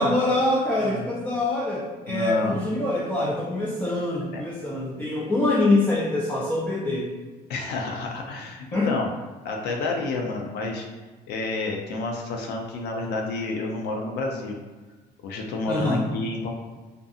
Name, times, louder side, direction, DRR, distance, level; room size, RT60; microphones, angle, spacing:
voice 1, 0.0-7.1 8.7-8.9 15.7-16.1, left 2 dB, 10° left, -6 dB, 0.4 m, -24 dB
voice 2, 2.1-2.7 4.3-4.4 7.5-9.1 9.4-10.9 11.3-14.6 15.2-16.5, left 3 dB, 75° left, 1 dB, 0.4 m, -29 dB
2.5 x 2.5 x 2.4 m, 1.2 s
cardioid pair, 110°, 17 cm